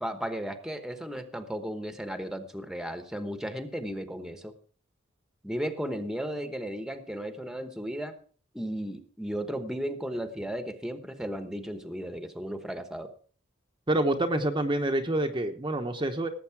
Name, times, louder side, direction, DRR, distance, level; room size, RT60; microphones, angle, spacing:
voice 1, 0.0-4.5 5.4-8.1 8.5-13.1, equal, 5° right, 8 dB, 1.1 m, -35 dB
voice 2, 13.9-16.3, right 1 dB, 25° right, 4 dB, 1.0 m, -27 dB
18.0 x 8.0 x 4.7 m, 0.43 s
head